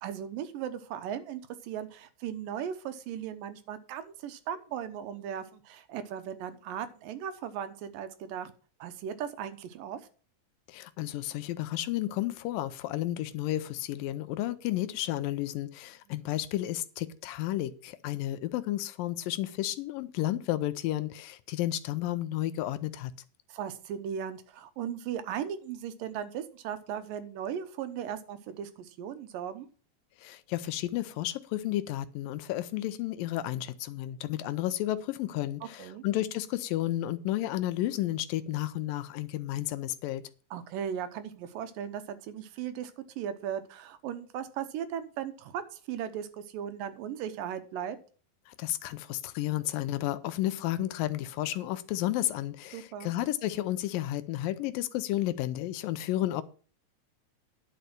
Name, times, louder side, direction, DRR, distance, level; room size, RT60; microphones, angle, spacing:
voice 1, 0.0-8.5 8.8-10.0 23.5-29.7 35.8-36.0 40.5-48.0 52.7-53.1, right 9 dB, 80° right, 2.5 m, -37 dB
voice 2, 10.7-23.1 30.2-40.2 48.5-56.4, left 14 dB, 80° left, 2.3 m, -32 dB
10.5 x 6.7 x 6.0 m
omnidirectional pair, 4.1 m